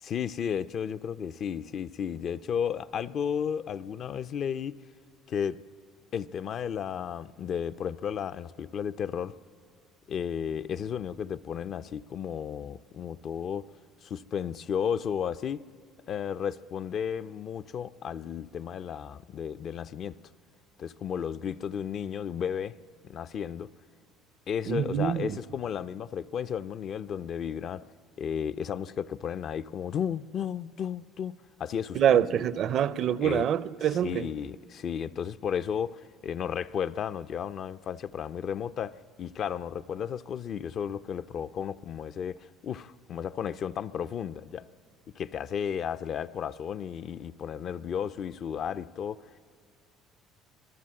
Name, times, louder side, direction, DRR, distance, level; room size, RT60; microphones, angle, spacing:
voice 1, 0.0-4.7 5.3-5.6 6.1-9.3 10.1-13.7 14.0-15.6 16.1-20.1 20.8-22.8 23.0-23.7 24.5-27.9 28.2-32.2 33.2-33.5 33.8-44.7 45.2-49.2, left 8 dB, 45° left, 0.5 m, -33 dB
voice 2, 24.7-25.4 31.9-34.3, right 9 dB, 50° right, 0.5 m, -25 dB
25.0 x 19.0 x 7.6 m
cardioid pair, 125°, 0 cm